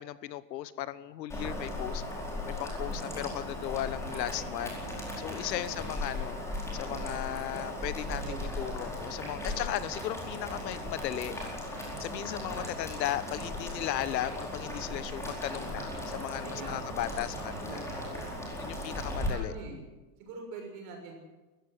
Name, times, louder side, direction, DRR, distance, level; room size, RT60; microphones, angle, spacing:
voice 1, 0.0-2.0 2.5-4.8 5.2-6.4 6.7-11.7 12.0-17.8 18.6-19.5, left 13 dB, 80° left, 15 dB, 1.3 m, -36 dB
Boiling, 1.3-19.3, left 1 dB, 5° left, 4.6 m, -37 dB
voice 2, 2.9-3.3 4.1-4.2 5.5-5.9 8.2-8.8 9.4-9.7 16.4-16.9 17.2-18.5 19.3-19.8 20.2-21.1, right 4 dB, 35° right, 3 dB, 6.6 m, -45 dB
18.5 x 15.0 x 9.6 m, 1.2 s
supercardioid pair, 170°, 50 cm